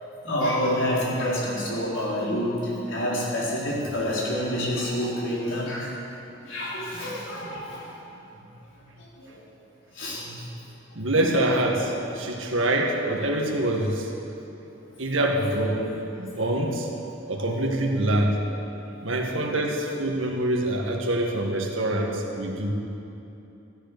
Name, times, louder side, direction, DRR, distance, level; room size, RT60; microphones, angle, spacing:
voice 1, 0.2-5.9 6.5-7.8 10.0-10.3 19.3-19.4, equal, 80° left, -5 dB, 4.0 m, -27 dB
voice 2, 11.0-14.1 15.0-15.9 16.1-16.9 17.3-18.4 19.0-22.7, right 1 dB, 90° right, 1 dB, 1.8 m, -25 dB
14.5 x 11.0 x 6.8 m, 2.9 s
head